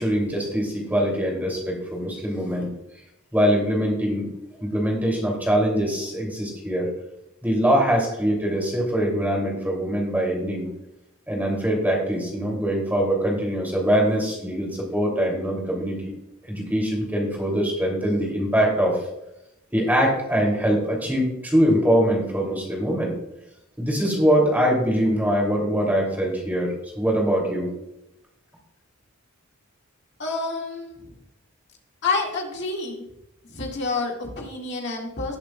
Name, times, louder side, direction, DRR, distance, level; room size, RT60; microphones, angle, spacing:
voice 1, 0.0-2.7 3.3-4.3 4.6-6.9 7.4-10.7 11.3-16.1 16.5-19.0 19.7-23.1 23.8-27.7, equal, 10° right, -1 dB, 2.8 m, -23 dB
voice 2, 30.2-31.0 32.0-33.0 33.5-35.4, left 3 dB, 55° left, -1 dB, 2.0 m, -28 dB
18.5 x 7.4 x 2.3 m, 0.85 s
head